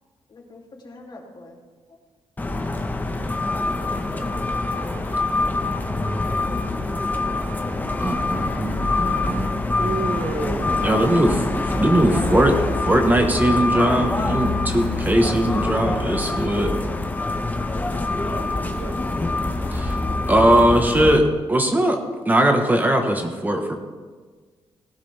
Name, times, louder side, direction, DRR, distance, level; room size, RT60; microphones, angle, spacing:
voice 1, 0.3-1.6 1.9-2.0 2.5-2.8 11.7-13.0, left 3 dB, 45° left, -1 dB, 2.9 m, -43 dB
sound 1, 2.4-21.2, left 2 dB, 15° left, 1.1 m, -25 dB
voice 2, 8.0-9.5 10.8-12.5 12.9-16.7 19.7-20.0 20.3-22.0 22.2-23.8, right 1 dB, 15° right, 4 dB, 1.3 m, -20 dB
voice 3, 9.8-11.0 18.3-19.0, right 4 dB, 55° right, 6 dB, 1.3 m, -31 dB
18.5 x 11.5 x 3.5 m, 1.4 s
cardioid pair, 105°, 10 cm